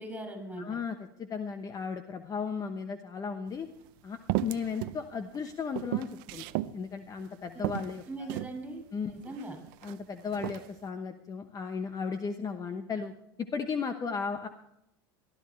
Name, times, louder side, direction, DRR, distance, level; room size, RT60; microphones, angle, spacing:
voice 1, 0.0-0.6 7.5-7.6 8.1-9.6, right 1 dB, 10° right, 4 dB, 6.6 m, -40 dB
voice 2, 0.6-3.7 4.0-6.4 6.7-8.3 8.9-9.2 9.8-13.1 13.4-14.5, left 5 dB, 30° left, 8 dB, 1.0 m, -35 dB
sound 1, 3.5-3.6 4.3-5.0 5.3-6.7 7.2-7.3 7.6-8.6 9.3-9.9 10.3-10.7, right 16 dB, 70° right, 0.6 m, -34 dB
19.5 x 12.5 x 3.3 m, 0.79 s
supercardioid pair, 100°, 12 cm